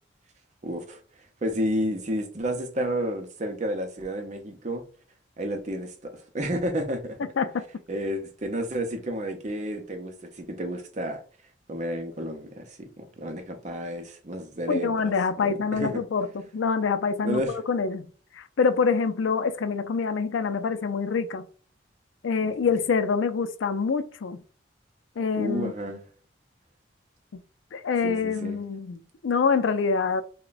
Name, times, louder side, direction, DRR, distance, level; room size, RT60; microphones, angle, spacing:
voice 1, 0.6-1.0 1.4-4.8 5.4-7.2 7.9-11.2 11.7-15.1 15.4-16.0 17.2-17.5 22.4-22.5 25.4-26.0 28.0-28.6, equal, 40° right, 0.6 m, -31 dB
voice 2, 14.7-16.3 16.5-18.1 18.4-21.5 22.2-24.4 25.2-25.7 27.3-27.4 27.7-30.2, left 5 dB, 90° left, 0.4 m, -26 dB
3.4 x 2.2 x 3.9 m
head